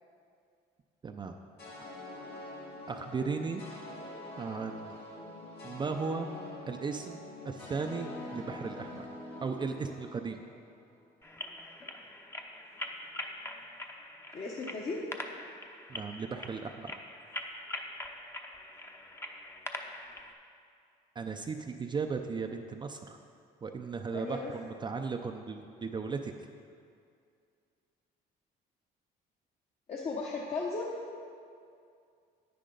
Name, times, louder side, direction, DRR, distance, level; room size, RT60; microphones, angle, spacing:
voice 1, 1.0-1.4 2.9-3.6 4.4-5.0 5.6-6.3 6.7-9.1 9.4-10.4 15.9-16.9 21.2-23.2 23.6-26.3, right 5 dB, 25° right, 4 dB, 0.5 m, -36 dB
sound 1, 1.6-10.9, left 2 dB, 75° left, 1.8 m, -45 dB
sound 2, 11.2-20.3, left 1 dB, 15° left, 0.8 m, -43 dB
voice 2, 14.3-15.1 24.1-24.5 29.9-31.0, left 3 dB, 40° left, -2 dB, 1.0 m, -36 dB
10.0 x 9.3 x 3.9 m, 2.3 s
cardioid pair, 110°, 17 cm